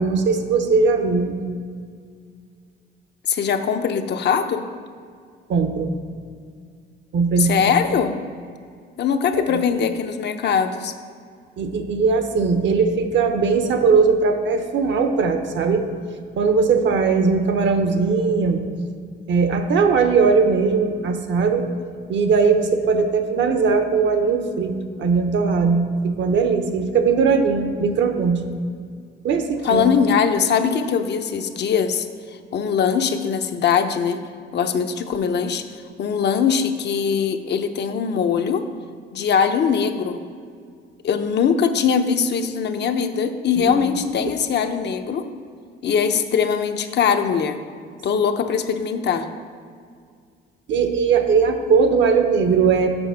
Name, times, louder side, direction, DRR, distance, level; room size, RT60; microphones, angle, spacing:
voice 1, 0.0-1.3 5.5-5.9 7.1-7.7 9.3-9.6 11.6-15.9 16.4-18.6 19.3-21.7 22.1-24.7 25.0-28.4 29.2-29.9 43.6-43.8 44.2-44.3 50.7-52.9, right 5 dB, 65° right, 7 dB, 0.9 m, -19 dB
voice 2, 3.3-4.6 7.4-8.1 9.0-10.9 29.6-32.1 32.5-34.2 34.5-35.6 36.0-38.6 39.1-40.2 41.0-45.2 45.8-47.6 48.0-49.3, left 6 dB, 60° left, 7 dB, 0.6 m, -21 dB
7.0 x 5.5 x 5.6 m, 2.1 s
cardioid pair, 90°, 20 cm